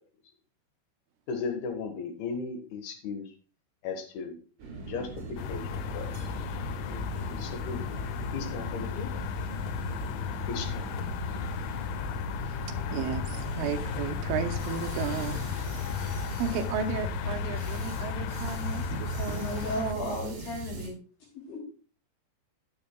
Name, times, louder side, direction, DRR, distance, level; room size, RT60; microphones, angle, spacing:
voice 1, 1.3-3.3 3.8-4.4 4.9-6.1 6.9-8.0 8.3-9.2 10.5-10.9, left 5 dB, 65° left, 5 dB, 2.7 m, -36 dB
sound 1, 4.6-20.9, right 4 dB, 55° right, 4.6 m, -40 dB
sound 2, 5.4-19.9, left 8 dB, 80° left, 2.8 m, -34 dB
voice 2, 12.9-15.4 15.7-15.9 16.4-20.1, right 7 dB, 80° right, 5 dB, 3.2 m, -34 dB
voice 3, 19.4-20.9 21.3-21.6, left 1 dB, 45° left, -1 dB, 4.7 m, -35 dB
17.5 x 7.0 x 2.2 m, 0.39 s
omnidirectional pair, 5.9 m